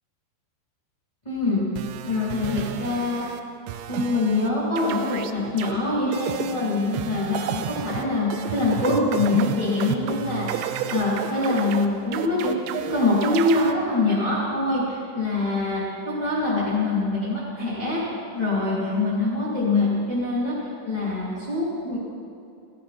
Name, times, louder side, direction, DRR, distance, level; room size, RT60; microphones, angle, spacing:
voice 1, 1.2-1.6 2.0-3.2 3.9-18.0 18.3-22.0, left 2 dB, 10° left, -9 dB, 2.6 m, -24 dB
sound 1, 1.8-3.4 3.7-4.5 4.8-5.7 6.1-13.7, right 11 dB, 85° right, 2.9 m, -32 dB
15.0 x 13.5 x 4.4 m, 2.5 s
omnidirectional pair, 5.4 m